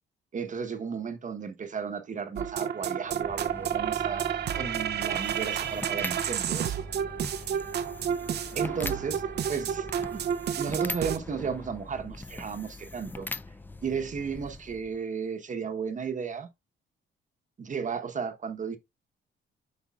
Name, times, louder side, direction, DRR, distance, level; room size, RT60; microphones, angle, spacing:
voice 1, 0.3-6.8 7.5-7.6 8.5-9.2 9.5-10.2 10.6-13.3 13.8-16.5 17.6-18.8, right 6 dB, 40° right, 1.0 m, -34 dB
sound 1, 2.4-11.2, right 9 dB, 55° right, 0.6 m, -31 dB
sound 2, 3.1-15.0, left 3 dB, 10° left, 0.3 m, -42 dB
8.3 x 5.0 x 2.4 m
cardioid pair, 90°, 20 cm